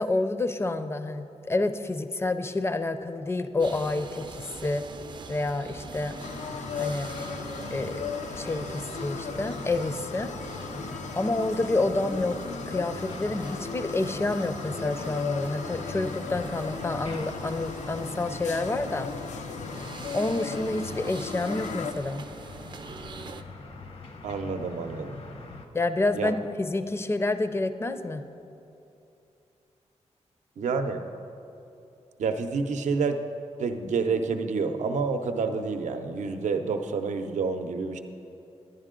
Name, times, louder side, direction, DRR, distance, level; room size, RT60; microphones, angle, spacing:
voice 1, 0.0-4.8 5.3-6.2 6.7-7.1 7.7-8.0 8.4-10.3 11.2-12.4 12.7-19.1 20.1-22.2 25.7-28.2, left 2 dB, 20° left, 10 dB, 0.4 m, -28 dB
sound 1, 3.6-23.4, right 4 dB, 40° right, 0.4 m, -43 dB
sound 2, 5.8-25.7, left 3 dB, 55° left, 0.7 m, -44 dB
sound 3, 6.2-21.9, left 6 dB, 85° left, 0.4 m, -37 dB
voice 2, 24.2-25.2 26.1-26.3 30.6-31.0 32.2-33.2 33.6-38.0, right 4 dB, 90° right, 7 dB, 0.6 m, -28 dB
10.5 x 10.5 x 3.7 m, 2.7 s
wide cardioid pair, 125°, 12 cm